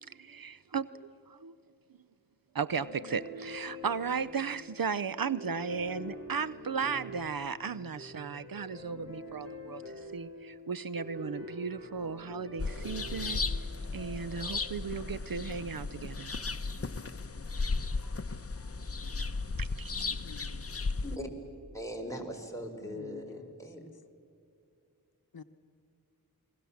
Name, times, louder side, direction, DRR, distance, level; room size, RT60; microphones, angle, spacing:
voice 1, 0.0-1.5 2.5-13.4 13.9-16.3 19.6-19.9, right 6 dB, 65° right, 16 dB, 0.6 m, -36 dB
sound 1, 2.7-14.7, left 1 dB, 35° right, 5.7 m, -46 dB
sound 2, 12.6-21.2, left 3 dB, 40° left, 0.8 m, -35 dB
voice 2, 19.9-20.8 22.8-23.5 25.3-25.4, left 5 dB, 75° left, 9 dB, 0.9 m, -50 dB
voice 3, 21.7-23.8, equal, 10° left, 1 dB, 4.4 m, -40 dB
28.5 x 21.0 x 7.2 m, 2.5 s
wide cardioid pair, 45°, 37 cm